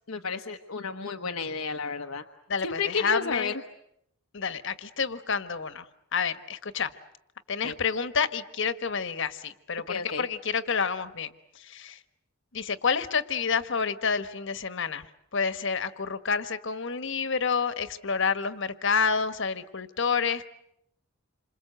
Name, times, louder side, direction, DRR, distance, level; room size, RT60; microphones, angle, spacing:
voice 1, 0.1-2.2 2.6-3.5 7.6-7.7 9.9-10.2, left 5 dB, 90° left, 5 dB, 1.2 m, -32 dB
voice 2, 2.5-3.5 4.3-5.9 6.1-6.9 7.5-12.0 12.5-15.1 15.3-20.5, left 5 dB, 60° left, 12 dB, 1.4 m, -29 dB
28.0 x 26.5 x 7.9 m, 0.77 s
head